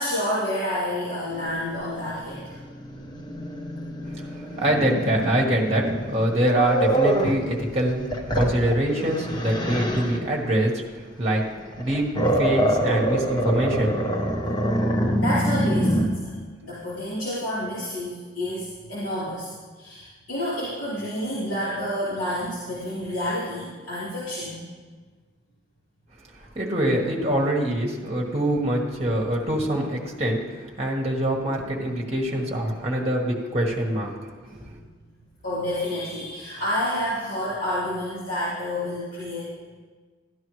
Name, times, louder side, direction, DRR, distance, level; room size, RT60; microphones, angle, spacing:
voice 1, 0.0-2.5 15.2-16.3 16.6-19.5 19.8-24.6 35.4-39.8, left 1 dB, 85° left, -10 dB, 3.5 m, -29 dB
Growling, 1.3-7.4 7.9-10.2 11.6-16.1, right 1 dB, 20° left, 0.8 m, -26 dB
voice 2, 4.6-8.1 8.3-10.8 11.2-11.4 11.8-13.9 26.5-34.1 34.5-34.8, right 1 dB, 30° right, -1 dB, 1.3 m, -24 dB
13.5 x 10.5 x 3.1 m, 1.4 s
head